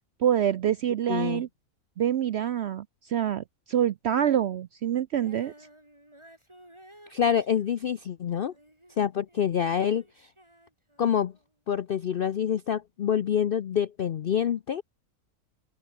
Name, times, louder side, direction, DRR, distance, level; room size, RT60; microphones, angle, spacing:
voice 1, 0.2-1.5 2.0-5.5, right 10 dB, 65° right, 0.6 m, -26 dB
voice 2, 1.1-1.4 7.1-8.5 9.0-10.0 11.0-11.3 11.7-14.8, left 8 dB, 65° left, 0.5 m, -26 dB
Female singing, 5.1-11.5 12.2-12.3, right 1 dB, 15° right, 7.2 m, -55 dB
open air
omnidirectional pair, 1.6 m